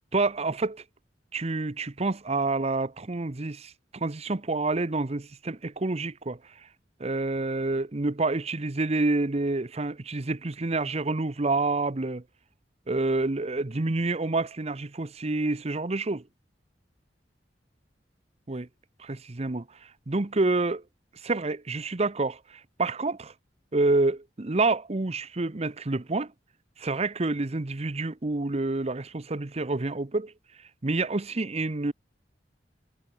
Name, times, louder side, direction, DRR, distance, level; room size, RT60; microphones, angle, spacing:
voice 1, 0.1-0.8 1.3-6.4 7.0-12.2 12.9-16.2 18.5-18.7 19.0-19.6 20.1-20.8 21.2-23.3 23.7-26.3 26.8-30.3 30.8-31.9, right 2 dB, 35° right, 0.8 m, -28 dB
head